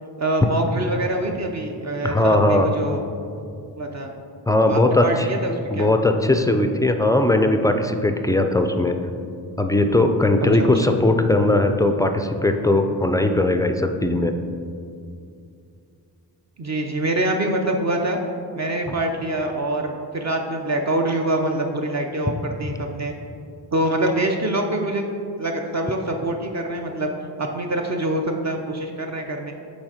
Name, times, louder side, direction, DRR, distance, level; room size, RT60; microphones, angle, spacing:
voice 1, 0.2-3.0 3.4-3.5 3.8-4.1 4.6-5.9 10.6-10.7 16.6-18.2 18.6-23.1 23.7-25.1 25.4-27.1 27.4-29.5, right 1 dB, 40° right, 2 dB, 0.6 m, -25 dB
voice 2, 2.0-2.7 4.5-5.3 5.7-9.0 9.6-14.3, left 2 dB, 10° left, 6 dB, 0.3 m, -19 dB
6.2 x 4.0 x 5.0 m, 2.4 s
cardioid pair, 75°, 44 cm